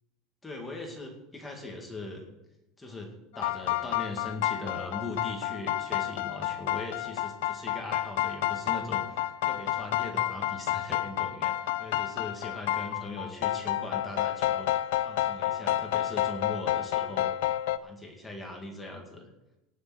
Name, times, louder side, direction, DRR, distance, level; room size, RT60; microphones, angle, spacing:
voice 1, 0.4-2.2 2.8-17.3 17.8-19.2, left 2 dB, 10° left, 1 dB, 2.0 m, -40 dB
sound 1, 3.4-17.8, left 13 dB, 85° left, 0.5 m, -30 dB
18.0 x 6.5 x 6.4 m, 0.94 s
cardioid pair, 175°, 0 cm